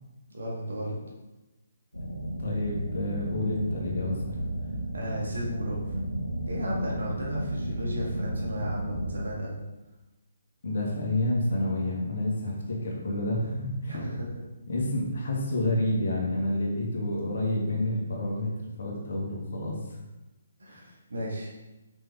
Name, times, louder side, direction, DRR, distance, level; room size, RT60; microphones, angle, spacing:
voice 1, 0.3-1.0 4.9-6.0 6.5-9.6 13.9-14.4 20.6-21.5, equal, 65° right, -4 dB, 2.2 m, -34 dB
sound 1, 1.9-9.1, right 1 dB, 90° left, 1.1 m, -33 dB
voice 2, 2.4-4.5 10.6-14.0 14.7-18.5 18.8-19.8 20.7-20.8, left 1 dB, 55° left, -2 dB, 2.0 m, -29 dB
6.0 x 5.8 x 3.6 m, 1.0 s
figure-of-eight pair, 135°, 0 cm